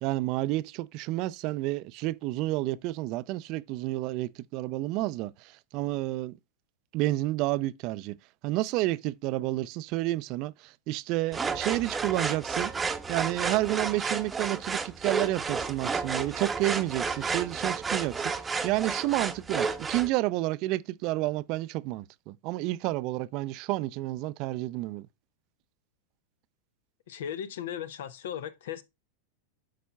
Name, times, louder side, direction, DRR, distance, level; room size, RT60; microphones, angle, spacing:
voice 1, 0.0-6.4 6.9-8.2 8.4-12.7 13.1-18.3 18.6-25.1, right 18 dB, 50° right, 0.4 m, -30 dB
sound 1, 11.3-20.1, right 4 dB, 15° right, 0.8 m, -32 dB
voice 2, 27.1-28.8, left 9 dB, 75° left, 0.8 m, -37 dB
11.5 x 4.2 x 2.3 m
hypercardioid pair, 105°, 0 cm